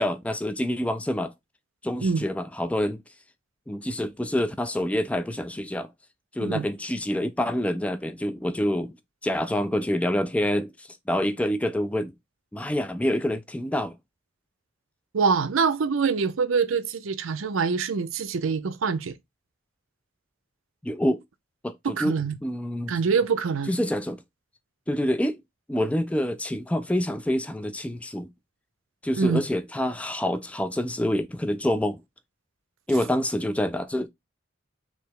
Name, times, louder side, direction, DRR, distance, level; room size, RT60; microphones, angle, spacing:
voice 1, 0.0-1.3 1.8-3.0 3.7-5.9 6.4-9.0 9.2-12.1 12.5-13.9 20.8-21.2 21.6-22.9 23.7-24.2 24.9-25.4 25.7-28.3 29.0-32.0 32.9-34.1, left 1 dB, 5° left, 0.3 m, -27 dB
voice 2, 15.1-19.1 21.8-22.4 22.9-23.7 29.2-29.4, right 5 dB, 80° right, 0.5 m, -25 dB
3.3 x 2.8 x 4.5 m
head